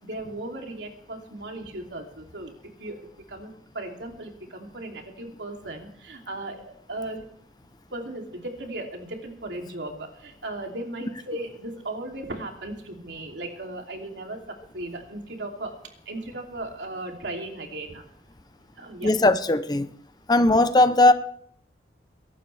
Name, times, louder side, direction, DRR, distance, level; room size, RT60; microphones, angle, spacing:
voice 1, 0.0-2.5 2.8-3.0 3.3-7.3 7.9-15.7 16.1-18.0 18.8-19.1, right 2 dB, 80° right, 2 dB, 2.9 m, -36 dB
voice 2, 19.0-19.9 20.3-21.1, left 2 dB, 25° left, 12 dB, 0.6 m, -18 dB
23.5 x 12.0 x 3.3 m, 0.64 s
head